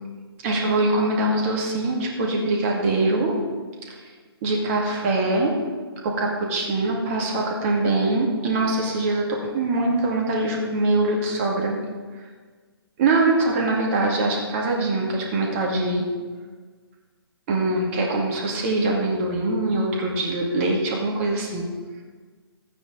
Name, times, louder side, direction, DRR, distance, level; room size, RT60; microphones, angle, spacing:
voice 1, 0.4-3.4 3.9-4.1 4.4-5.6 6.0-11.8 13.0-16.1 17.5-21.7, right 2 dB, 30° right, -1 dB, 2.1 m, -23 dB
14.5 x 9.0 x 4.0 m, 1.5 s
figure-of-eight pair, 135°, 14 cm